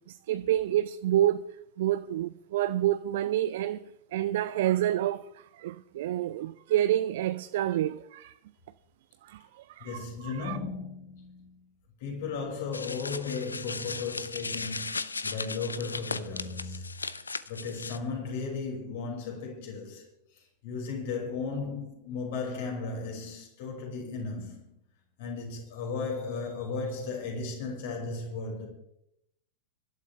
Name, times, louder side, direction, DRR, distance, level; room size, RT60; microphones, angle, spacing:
voice 1, 0.1-1.4 1.8-3.8 4.1-8.3 9.2-10.6, right 12 dB, 55° right, 0.5 m, -28 dB
voice 2, 9.8-11.5 12.0-16.8 17.5-20.0 20.3-24.6 25.2-28.7, left 4 dB, 55° left, 5.9 m, -35 dB
sound 1, 12.7-18.0, left 4 dB, 75° left, 0.6 m, -37 dB
25.5 x 12.0 x 3.4 m
figure-of-eight pair, 90°, 0 cm